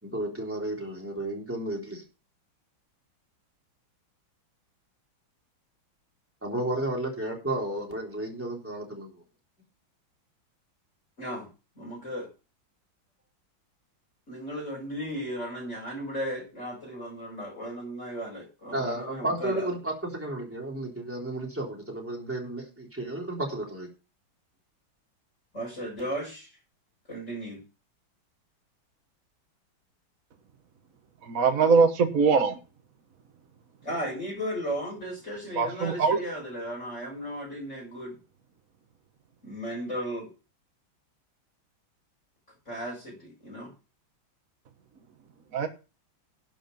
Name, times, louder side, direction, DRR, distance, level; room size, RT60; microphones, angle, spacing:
voice 1, 0.0-2.0 6.4-9.1 18.7-23.9, right 1 dB, 5° right, -2 dB, 3.6 m, -32 dB
voice 2, 11.2-11.5 11.7-12.3 14.3-19.7 25.5-26.5 27.1-27.6 33.8-38.2 39.4-40.3 42.7-43.7, equal, 35° left, -5 dB, 6.7 m, -35 dB
voice 3, 31.3-32.6 35.5-36.2 45.5-45.7, right 5 dB, 45° right, 5 dB, 1.5 m, -22 dB
11.0 x 7.6 x 5.3 m, 0.32 s
omnidirectional pair, 2.2 m